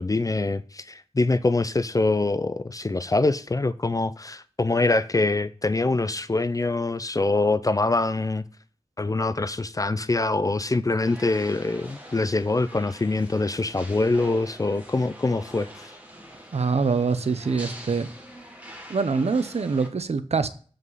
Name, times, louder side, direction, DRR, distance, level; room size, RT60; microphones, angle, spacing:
voice 1, 0.0-8.4 9.0-15.9, left 2 dB, 35° left, 0.4 m, -24 dB
sound 1, 11.0-19.9, equal, 15° right, 1.8 m, -44 dB
voice 2, 16.5-18.1 18.9-20.5, right 4 dB, 75° right, 0.7 m, -24 dB
7.5 x 5.2 x 4.0 m
wide cardioid pair, 75°, 11 cm